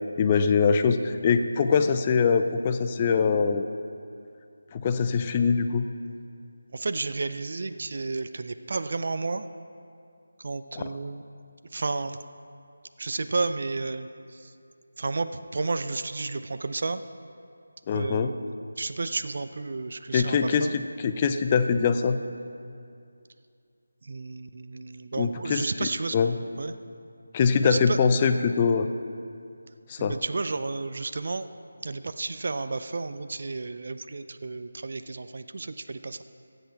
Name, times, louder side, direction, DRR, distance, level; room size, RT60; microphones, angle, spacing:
voice 1, 0.2-3.7 4.7-5.9 10.7-10.8 17.9-18.3 20.1-22.2 25.2-26.4 27.3-28.9 29.9-30.2, left 5 dB, 25° left, 9 dB, 0.4 m, -23 dB
voice 2, 6.7-9.4 10.4-11.2 11.7-12.2 13.0-14.1 15.0-17.0 17.9-20.7 24.0-26.2 26.6-26.7 27.6-28.0 30.0-31.5 31.8-36.2, right 3 dB, 50° right, 10 dB, 0.4 m, -32 dB
15.0 x 8.0 x 4.6 m, 2.4 s
figure-of-eight pair, 160°, 0 cm